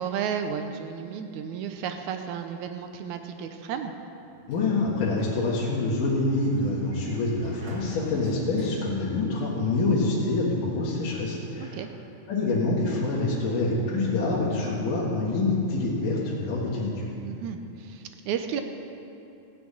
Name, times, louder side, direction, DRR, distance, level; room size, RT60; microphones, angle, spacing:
voice 1, 0.0-3.9 8.2-8.3 11.7-11.9 17.2-18.6, right 7 dB, 75° right, 7 dB, 1.8 m, -33 dB
Sliding door, 4.2-9.8, right 2 dB, 45° right, 1.9 m, -49 dB
voice 2, 4.5-11.8 12.3-17.1, left 2 dB, 70° left, -6 dB, 3.2 m, -26 dB
16.0 x 6.2 x 8.7 m, 2.7 s
omnidirectional pair, 4.0 m